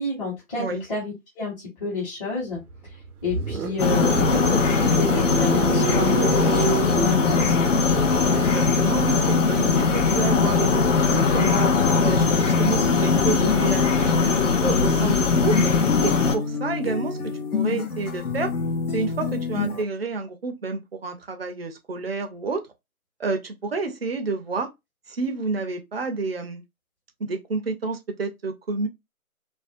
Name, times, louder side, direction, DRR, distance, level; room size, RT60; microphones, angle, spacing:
voice 1, 0.0-2.6 3.2-7.7, left 3 dB, 25° left, 1.1 m, -30 dB
sound 1, 2.5-12.8, right 6 dB, 85° right, 0.6 m, -32 dB
sound 2, 3.8-16.4, left 5 dB, 60° left, 0.6 m, -20 dB
voice 2, 8.3-11.7 12.0-14.3 14.6-15.7 16.0-17.2 17.5-18.5 18.9-22.6 23.2-24.7 25.1-26.6 27.2-28.9, right 3 dB, 45° right, 0.5 m, -29 dB
sound 3, 11.8-19.8, left 4 dB, 85° left, 0.9 m, -29 dB
2.5 x 2.1 x 2.4 m
figure-of-eight pair, 150°, 43 cm